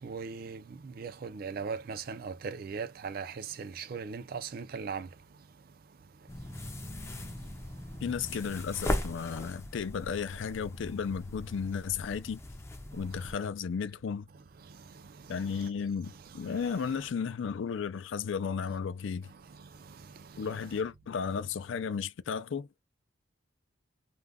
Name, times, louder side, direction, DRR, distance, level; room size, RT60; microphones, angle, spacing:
voice 1, 0.0-5.1 13.0-13.4 14.6-15.7 16.0-16.9 19.2-20.8, right 5 dB, 50° right, 0.4 m, -41 dB
sound 1, 6.3-13.3, left 1 dB, 15° left, 0.4 m, -39 dB
voice 2, 8.0-12.4 12.9-14.3 15.3-19.3 20.4-22.7, left 6 dB, 75° left, 0.4 m, -34 dB
2.4 x 2.2 x 3.4 m
head